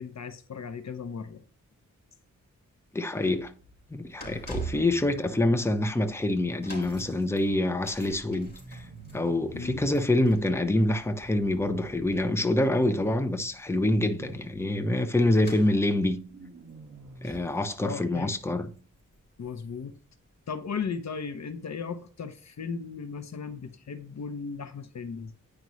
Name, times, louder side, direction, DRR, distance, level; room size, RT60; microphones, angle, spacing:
voice 1, 0.0-1.4 4.3-4.4 9.5-9.9 17.2-17.4 17.8-18.3 19.4-20.0 20.5-25.3, left 5 dB, 60° left, 0.8 m, -36 dB
voice 2, 2.9-3.5 3.9-8.9 9.1-16.2 17.2-18.7, left 1 dB, 10° left, 0.8 m, -26 dB
sound 1, 3.1-19.5 19.7-20.0 20.8-20.9, right 3 dB, 30° left, 3.8 m, -46 dB
sound 2, 8.6-10.0 12.3-13.4 13.8-14.5 16.2-17.4, right 3 dB, 60° right, 1.8 m, -47 dB
9.5 x 5.2 x 3.1 m
cardioid pair, 75°, 31 cm